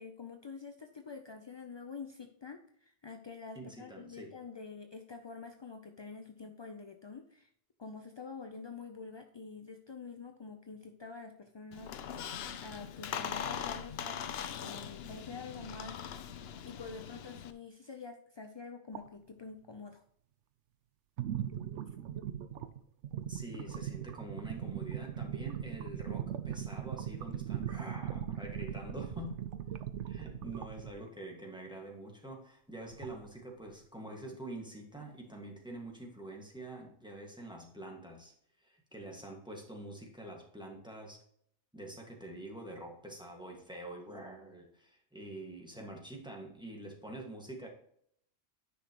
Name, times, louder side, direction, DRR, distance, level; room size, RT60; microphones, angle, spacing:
voice 1, 0.0-7.5 7.8-12.2 12.6-16.0 16.6-20.0, left 4 dB, 45° left, 5 dB, 0.3 m, -47 dB
voice 2, 3.5-4.4 23.3-29.3 30.0-38.3 38.6-41.2 41.7-47.7, right 1 dB, 5° right, 0 dB, 1.6 m, -46 dB
Squeak, 11.7-17.5, left 8 dB, 65° left, 0.8 m, -41 dB
sound 1, 18.9-19.1 21.2-31.0 32.9-33.5 34.3-34.4 35.0-35.1, right 9 dB, 85° right, 0.9 m, -39 dB
10.0 x 5.7 x 2.9 m, 0.67 s
omnidirectional pair, 1.2 m